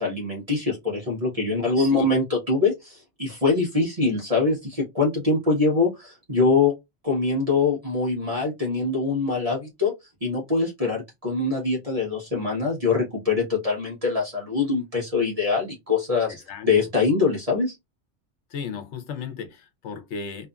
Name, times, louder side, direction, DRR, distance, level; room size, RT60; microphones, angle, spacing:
voice 1, 0.0-6.7 7.0-9.9 10.2-17.8, left 4 dB, 35° right, 0.9 m, -23 dB
voice 2, 1.6-2.1 16.3-16.7 18.5-20.5, left 6 dB, 80° left, 1.0 m, -35 dB
2.7 x 2.5 x 2.2 m
omnidirectional pair, 1.2 m